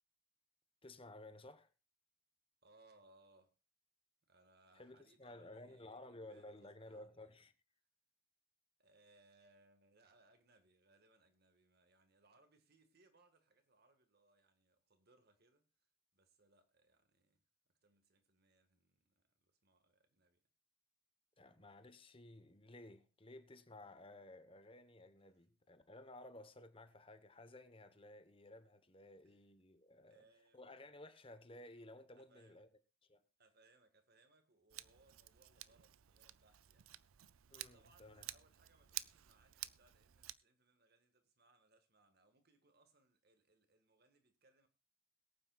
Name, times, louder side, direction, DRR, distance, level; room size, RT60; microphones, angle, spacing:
voice 1, 0.8-1.7 4.7-7.5 21.4-30.2 30.5-32.7 33.1-33.2 37.5-38.3, left 1 dB, 25° left, 1.1 m, -56 dB
voice 2, 2.6-3.5 4.2-7.4 8.8-17.4 17.8-20.4 29.2-29.4 30.1-30.6 32.2-32.7 33.4-36.9 37.6-44.7, right 2 dB, 50° right, 1.7 m, -71 dB
Scissors, 34.7-40.3, right 15 dB, 80° right, 0.5 m, -51 dB
22.0 x 8.9 x 2.4 m
head